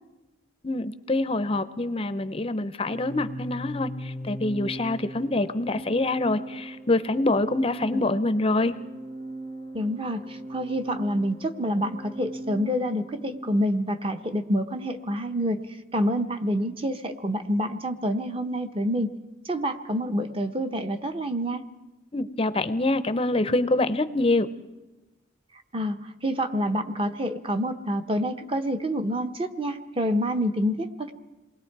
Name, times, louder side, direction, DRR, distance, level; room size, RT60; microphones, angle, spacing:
voice 1, 0.6-8.7 22.1-24.5, left 2 dB, 30° left, 12 dB, 0.6 m, -25 dB
Organ, 2.8-13.6, right 1 dB, 85° right, 6.2 m, -39 dB
voice 2, 9.7-15.6 15.9-19.1 19.4-21.6 25.7-31.1, equal, 25° right, 7 dB, 0.9 m, -27 dB
27.5 x 20.5 x 4.7 m, 1.1 s
head